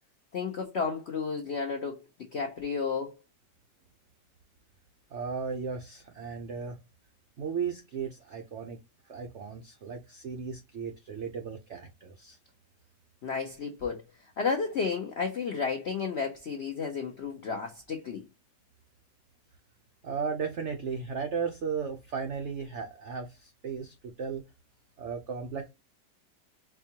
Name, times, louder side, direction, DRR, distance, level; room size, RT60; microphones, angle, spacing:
voice 1, 0.3-2.0 2.3-3.1 13.2-14.0 14.4-18.2, left 5 dB, 70° left, 0.6 m, -32 dB
voice 2, 5.1-6.8 7.4-8.8 9.1-12.4 20.0-24.4 25.0-25.7, right 6 dB, 75° right, 0.6 m, -35 dB
4.5 x 2.3 x 2.8 m
omnidirectional pair, 2.0 m